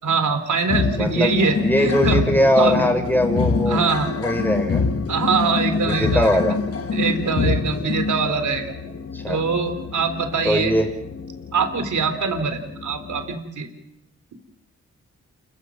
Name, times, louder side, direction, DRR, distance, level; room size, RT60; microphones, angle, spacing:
voice 1, 0.0-2.2 2.5-2.8 3.7-4.1 5.1-6.3 6.9-8.7 9.3-10.7 11.5-13.7, right 4 dB, 75° right, 8 dB, 3.7 m, -23 dB
sound 1, 0.7-13.3, left 4 dB, 50° left, 1.5 m, -26 dB
voice 2, 1.0-3.8 4.2-4.8 5.8-6.5 9.1-9.4 10.4-10.9, equal, 5° left, 4 dB, 6.1 m, -20 dB
28.5 x 15.0 x 7.7 m, 0.87 s
cardioid pair, 65°, 30 cm